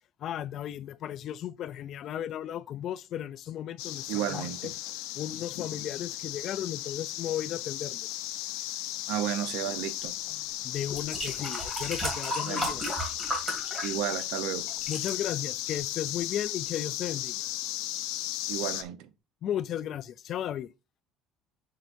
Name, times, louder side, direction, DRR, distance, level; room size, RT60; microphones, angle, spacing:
voice 1, 0.2-4.5 5.1-8.2 10.6-12.8 14.9-17.4 19.4-20.7, left 10 dB, 40° left, 0.3 m, -35 dB
sound 1, 3.8-18.8, left 15 dB, 85° left, 0.6 m, -36 dB
voice 2, 4.1-4.7 9.1-10.2 12.5-12.7 13.8-14.7 18.5-19.1, right 11 dB, 75° right, 0.7 m, -33 dB
sound 2, 10.3-10.4 10.9-14.4 14.7-15.1 15.8-15.9, equal, 15° right, 2.3 m, -34 dB
7.5 x 6.7 x 2.6 m
cardioid pair, 180°, 0 cm